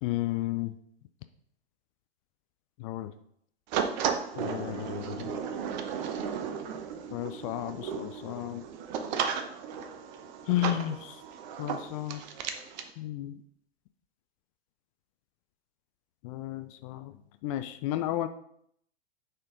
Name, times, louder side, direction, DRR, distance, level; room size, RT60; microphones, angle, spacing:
voice 1, 0.0-0.8 2.8-3.1 4.3-5.4 7.1-8.6 10.5-11.2 11.6-12.2 13.0-13.4 16.2-17.1 17.4-18.3, left 14 dB, 35° left, 10 dB, 0.4 m, -33 dB
sound 1, 3.7-12.9, right 7 dB, 45° right, 0.9 m, -35 dB
8.8 x 4.4 x 3.9 m, 0.69 s
figure-of-eight pair, 105°, 32 cm